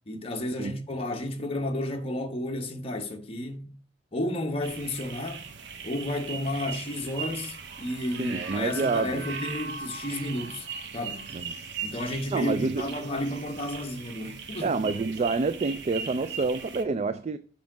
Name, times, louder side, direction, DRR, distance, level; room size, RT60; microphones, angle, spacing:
voice 1, 0.1-3.7 4.1-5.4 5.8-10.7 10.9-11.3 11.8-14.9, left 1 dB, 30° left, 1.2 m, -32 dB
sound 1, 4.6-16.8, right 5 dB, 70° right, 0.9 m, -39 dB
voice 2, 8.2-9.3 11.3-11.6 12.3-12.9 14.6-17.4, right 4 dB, 35° right, 0.3 m, -28 dB
7.3 x 4.6 x 6.0 m
head